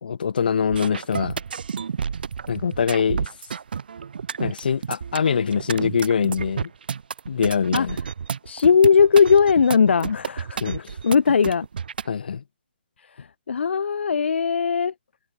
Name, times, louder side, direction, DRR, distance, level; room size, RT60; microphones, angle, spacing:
voice 1, 0.0-1.4 2.5-3.3 4.4-6.7 7.3-8.0 10.6-11.0 12.1-12.4, left 6 dB, 55° left, 1.2 m, -23 dB
sound 1, 0.7-12.1, right 6 dB, 55° right, 0.9 m, -31 dB
voice 2, 8.4-10.6 11.0-11.7 13.2-14.9, left 6 dB, 90° left, 0.4 m, -18 dB
hypercardioid pair, 175°, 6 cm